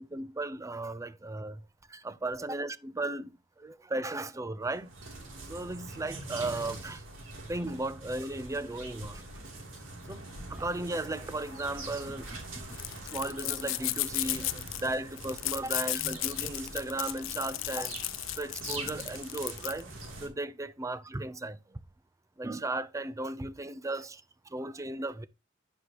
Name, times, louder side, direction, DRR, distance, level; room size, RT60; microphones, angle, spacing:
voice 1, 0.0-3.3 3.6-4.9 5.4-7.0 7.5-9.3 10.1-10.2 10.5-12.8 13.1-17.9 18.4-19.9 20.2-21.8 22.4-25.3, right 2 dB, 15° right, 0.5 m, -36 dB
sound 1, 4.6-20.3, right 2 dB, 90° right, 3.0 m, -44 dB
sound 2, 9.0-19.8, left 17 dB, 80° left, 0.5 m, -36 dB
9.5 x 6.6 x 3.0 m
head